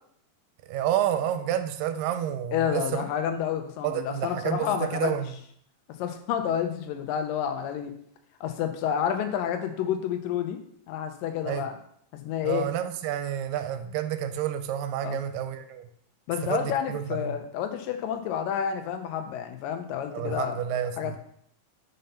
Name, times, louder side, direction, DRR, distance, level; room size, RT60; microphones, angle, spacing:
voice 1, 0.6-3.0 3.8-4.7 4.9-5.4 11.5-11.7 12.4-15.9 16.5-16.6 16.9-17.4 20.1-21.2, right 10 dB, 90° right, 8 dB, 2.3 m, -29 dB
voice 2, 2.5-5.1 6.0-7.9 8.4-10.6 10.9-11.8 12.1-12.7 15.0-15.2 16.3-20.6 21.0-21.2, left 9 dB, 85° left, 6 dB, 2.4 m, -29 dB
5.4 x 5.4 x 5.6 m, 0.68 s
omnidirectional pair, 3.9 m